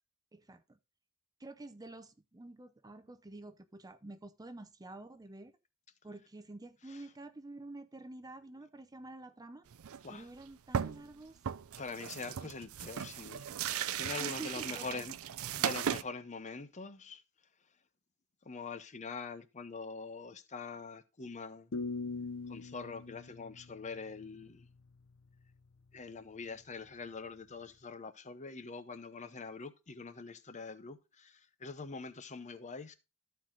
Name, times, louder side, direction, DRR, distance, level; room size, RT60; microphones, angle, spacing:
voice 1, 0.3-0.8 1.4-5.5 6.0-9.7 10.1-11.4 14.2-15.1, right 2 dB, 20° right, 0.6 m, -48 dB
sound 1, 9.7-10.1 10.4-10.5 10.7-11.1 11.4-16.0, right 8 dB, 85° right, 0.5 m, -37 dB
voice 2, 11.8-15.2 15.6-17.2 18.4-21.7 22.5-24.7 25.9-32.9, left 4 dB, 35° left, 0.8 m, -44 dB
sound 2, 21.7-24.7, left 4 dB, 65° left, 0.6 m, -42 dB
13.0 x 4.6 x 3.8 m
head